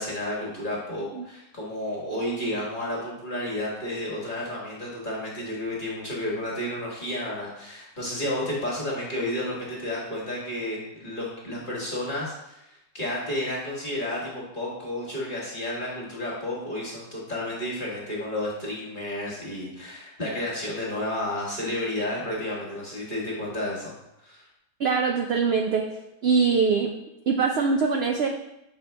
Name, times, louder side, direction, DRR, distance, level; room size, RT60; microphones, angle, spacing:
voice 1, 0.0-23.9 24.2-24.5, left 1 dB, 35° left, -5 dB, 1.6 m, -31 dB
voice 2, 24.8-25.8 26.2-26.9 27.3-28.3, right 5 dB, 65° right, 3 dB, 0.6 m, -23 dB
6.8 x 5.0 x 3.3 m, 0.86 s
omnidirectional pair, 1.5 m